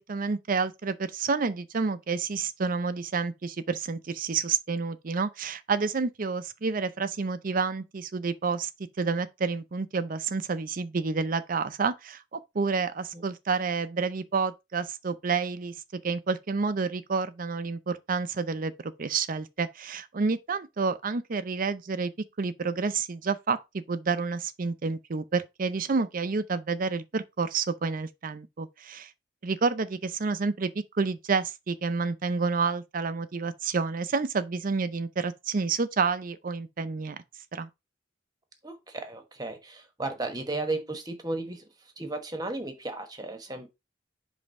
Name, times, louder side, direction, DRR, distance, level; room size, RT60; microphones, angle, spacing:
voice 1, 0.0-8.7 9.0-15.7 16.0-22.1 22.4-29.1 29.4-37.2 37.5-37.7, right 4 dB, 50° right, 0.5 m, -29 dB
voice 2, 38.6-43.7, right 2 dB, 20° right, 1.2 m, -35 dB
5.3 x 3.4 x 5.2 m
head